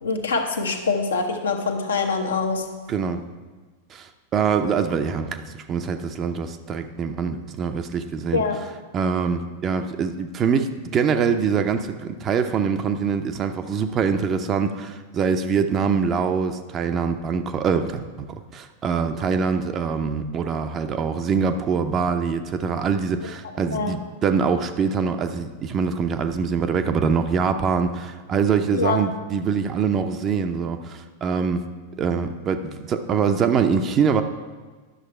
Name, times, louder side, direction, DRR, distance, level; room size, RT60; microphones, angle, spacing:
voice 1, 0.0-2.7 8.3-8.6 23.7-24.0 28.7-29.0, left 4 dB, 70° left, 4 dB, 1.0 m, -24 dB
voice 2, 2.9-3.2 3.9-8.4 8.9-31.6 32.0-34.2, right 6 dB, 30° right, 8 dB, 0.6 m, -24 dB
10.5 x 6.5 x 4.3 m, 1.4 s
figure-of-eight pair, 90°, 0 cm